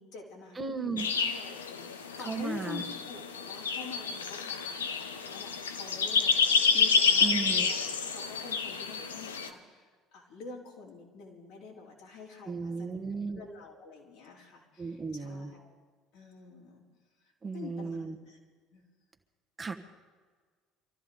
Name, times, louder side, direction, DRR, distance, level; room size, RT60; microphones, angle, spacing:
voice 1, 0.0-6.3 6.7-13.0 13.3-15.7 16.1-16.8 17.5-18.4 18.7-18.8, left 5 dB, 65° left, -3 dB, 4.2 m, -47 dB
voice 2, 0.5-1.1 2.2-2.8 7.2-7.7 12.5-13.4 14.8-15.5 17.4-18.2 19.6-19.8, right 4 dB, 20° right, 6 dB, 1.5 m, -35 dB
sound 1, 1.0-9.5, left 5 dB, 85° left, 1.0 m, -29 dB
25.0 x 14.0 x 4.0 m, 1.5 s
hypercardioid pair, 60°, 0 cm